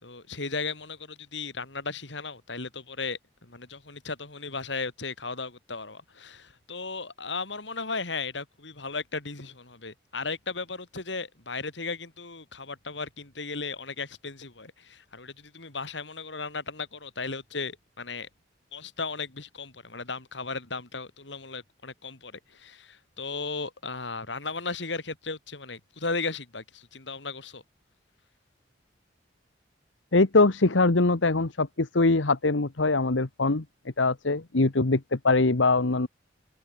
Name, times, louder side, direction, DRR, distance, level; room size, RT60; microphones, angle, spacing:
voice 1, 0.0-18.3 18.7-27.6, left 4 dB, 70° left, 3.5 m, -36 dB
voice 2, 30.1-33.6 34.0-36.1, left 3 dB, 85° left, 1.3 m, -22 dB
head